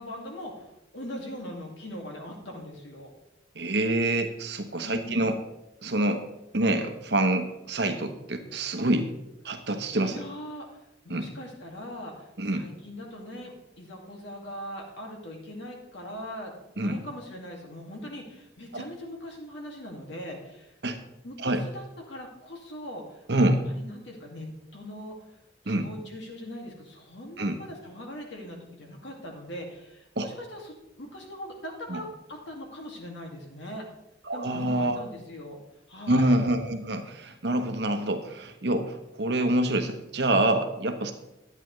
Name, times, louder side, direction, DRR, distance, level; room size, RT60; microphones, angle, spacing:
voice 1, 0.0-3.1 4.8-5.2 8.5-8.9 10.0-10.8 11.0-20.7 21.2-25.2 25.6-33.8 34.3-35.6 35.9-36.3, equal, 70° left, 1 dB, 2.0 m, -41 dB
voice 2, 3.6-5.4 5.8-6.2 6.5-9.1 9.4-10.2 11.1-11.2 12.4-12.6 16.8-17.0 18.7-18.8 20.8-21.0 21.4-21.6 23.3-23.6 25.7-25.9 27.4-27.6 30.2-30.3 31.9-32.0 34.3-35.0 36.1-38.9 39.2-41.1, right 1 dB, 60° right, 7 dB, 0.9 m, -26 dB
11.0 x 9.1 x 3.1 m, 0.88 s
head